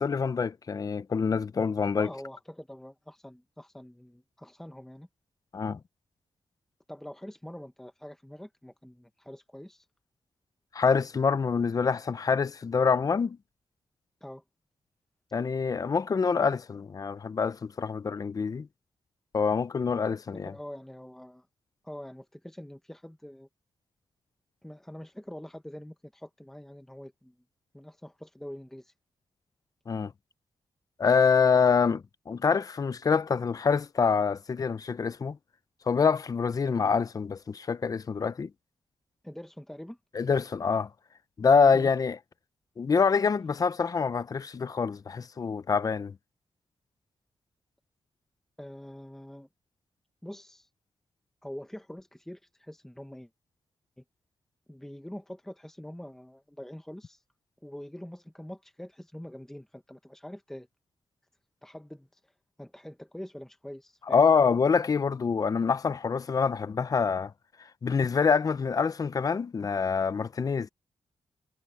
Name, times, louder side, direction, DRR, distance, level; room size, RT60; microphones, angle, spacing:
voice 1, 0.0-2.1 5.5-5.8 10.7-13.4 15.3-18.7 19.3-20.5 29.9-30.1 31.0-35.4 35.9-38.5 40.1-40.9 41.4-42.2 42.8-46.1 64.1-67.3 67.8-70.7, left 5 dB, 40° left, 0.7 m, -26 dB
voice 2, 2.0-5.1 6.9-9.9 14.2-14.4 20.3-21.5 21.8-23.5 24.6-27.3 27.7-28.9 36.6-37.0 39.2-40.0 41.7-41.9 48.6-49.5 50.2-50.7 51.4-53.3 54.0-54.1 54.7-57.2 57.6-60.7 61.6-62.3 62.6-64.2, equal, 5° left, 1.3 m, -44 dB
wide cardioid pair, 120°, 10 cm